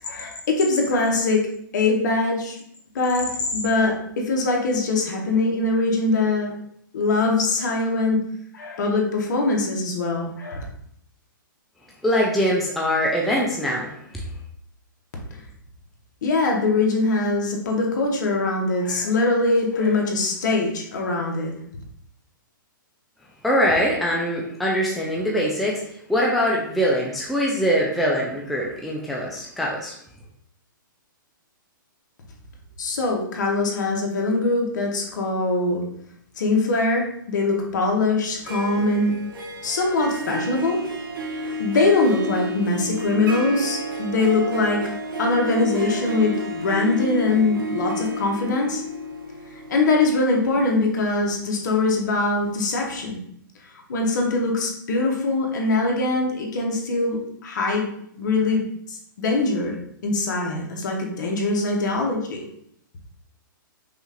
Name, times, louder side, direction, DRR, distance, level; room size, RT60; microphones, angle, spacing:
voice 1, 0.0-1.4 1.7-2.6 2.9-6.5 6.9-8.2 8.5-10.6 16.2-21.5 32.8-35.8 36.4-39.1 39.6-40.8 41.3-44.8 45.2-48.8 49.7-53.2 53.9-57.9 58.2-58.6 58.9-59.8 60.0-62.4, left 3 dB, 60° left, 0 dB, 1.1 m, -22 dB
voice 2, 12.0-13.9 23.4-25.8 26.1-29.9, equal, ahead, -4 dB, 0.3 m, -22 dB
Harp, 38.3-52.2, equal, 75° right, 1.0 m, -31 dB
5.4 x 2.4 x 2.9 m, 0.69 s
hypercardioid pair, 155°, 11 cm